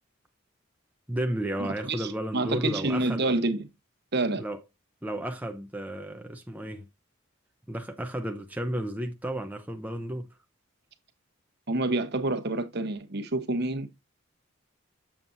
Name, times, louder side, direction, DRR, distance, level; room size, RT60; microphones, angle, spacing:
voice 1, 1.1-3.2 4.4-4.6 5.0-6.9 7.7-10.3, right 1 dB, 10° right, 0.6 m, -33 dB
voice 2, 1.6-3.7 4.1-4.4 11.7-13.9, right 2 dB, 50° right, 1.1 m, -28 dB
7.4 x 7.2 x 2.6 m
head